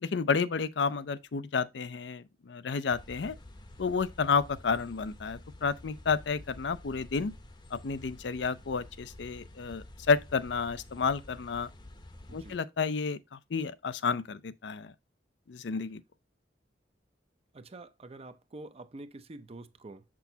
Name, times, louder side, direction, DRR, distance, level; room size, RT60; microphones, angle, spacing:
voice 1, 0.0-3.3 3.8-7.3 7.7-11.7 12.3-13.2 13.5-14.9 15.5-16.0, left 5 dB, 70° left, 0.5 m, -31 dB
sound 1, 2.9-12.6, left 1 dB, 25° left, 0.8 m, -50 dB
voice 2, 12.3-12.6 17.5-20.0, right 2 dB, 35° right, 0.6 m, -47 dB
7.0 x 6.2 x 2.7 m
head